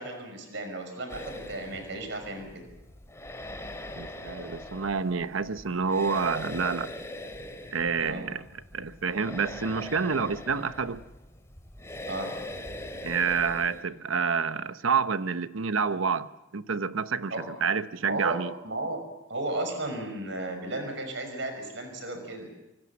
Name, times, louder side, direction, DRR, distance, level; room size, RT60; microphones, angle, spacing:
voice 1, 0.0-2.5 8.0-8.2 12.1-12.3 17.3-17.4 18.0-18.4 18.6-19.0 19.3-22.5, right 2 dB, 65° right, 5.9 m, -34 dB
sound 1, 1.1-13.8, left 1 dB, 15° left, 2.8 m, -42 dB
voice 2, 3.9-6.9 7.7-8.4 8.7-11.0 13.0-18.5, right 5 dB, 90° right, 0.9 m, -28 dB
25.5 x 24.0 x 7.2 m
head